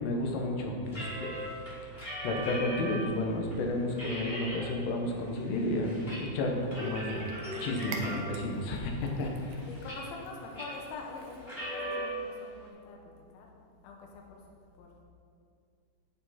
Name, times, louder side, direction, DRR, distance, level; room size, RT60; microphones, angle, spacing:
voice 1, 0.0-1.3 2.2-7.2 7.6-9.7, left 1 dB, 85° left, 1 dB, 3.6 m, -32 dB
sound 1, 0.9-3.1 3.5-3.6 3.9-4.7 5.1-6.2 6.5-8.5 9.1-10.2 10.5-10.9 11.4-12.1, equal, 20° left, 1.8 m, -39 dB
Cat, 6.6-11.8, right 4 dB, 80° right, 2.1 m, -47 dB
voice 2, 9.7-13.5 13.8-14.4 14.8-15.0, left 3 dB, 70° left, 0 dB, 2.5 m, -45 dB
9.7 x 8.8 x 4.2 m, 2.3 s
omnidirectional pair, 5.6 m